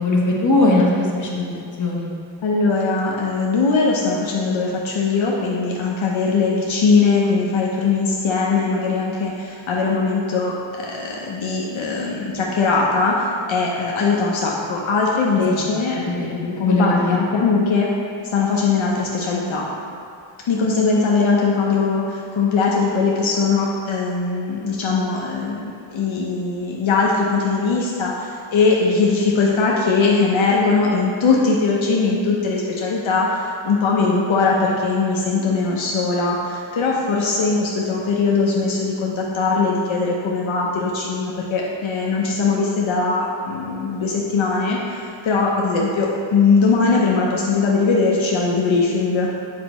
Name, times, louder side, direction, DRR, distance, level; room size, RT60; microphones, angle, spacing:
voice 1, 0.0-1.5 1.8-2.1 15.5-15.6 15.9-17.2, left 2 dB, 40° left, -4 dB, 1.1 m, -20 dB
voice 2, 2.4-17.9 18.3-19.7 20.4-49.3, left 4 dB, 75° left, -3 dB, 0.8 m, -20 dB
7.4 x 5.2 x 3.0 m, 2.3 s
wide cardioid pair, 115°, 48 cm